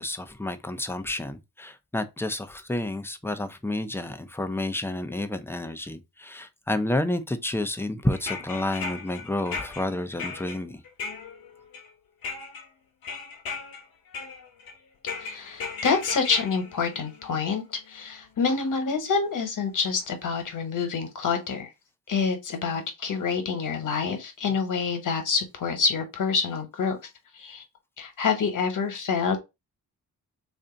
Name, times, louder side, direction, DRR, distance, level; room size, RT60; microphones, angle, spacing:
voice 1, 0.0-10.8, left 1 dB, 5° left, 0.5 m, -30 dB
sound 1, 8.1-11.9 12.2-12.7 13.0-13.8 14.1-14.7 15.1-17.7 18.7-18.8 19.9-20.0 20.4-20.5, left 5 dB, 80° left, 0.8 m, -36 dB
voice 2, 15.2-21.7 22.1-27.0 27.3-27.6 28.0-29.4, left 5 dB, 60° left, 1.2 m, -27 dB
3.3 x 2.6 x 3.8 m
cardioid pair, 105°, 36 cm